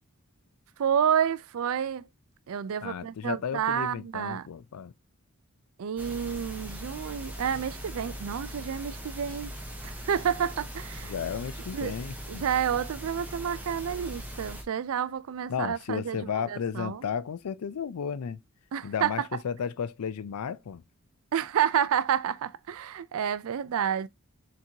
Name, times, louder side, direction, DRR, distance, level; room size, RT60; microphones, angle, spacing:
voice 1, 0.8-2.0 2.5-4.5 5.8-9.5 9.8-11.1 11.7-11.9 12.3-17.0 18.7-19.3 21.3-24.1, right 8 dB, 70° right, 0.4 m, -29 dB
voice 2, 2.8-4.9 11.0-12.4 15.5-18.4 18.8-20.8, left 7 dB, 90° left, 0.4 m, -33 dB
sound 1, 6.0-14.6, equal, 5° right, 0.8 m, -40 dB
sound 2, 6.4-6.5 6.7-6.8 7.2-7.3 7.6-7.7 8.3-8.4 9.0-9.1 9.3-9.4 9.8-9.9 10.2-10.3 10.9-11.0 11.9-12.0, right 2 dB, 40° right, 1.0 m, -52 dB
5.8 x 2.9 x 2.8 m
head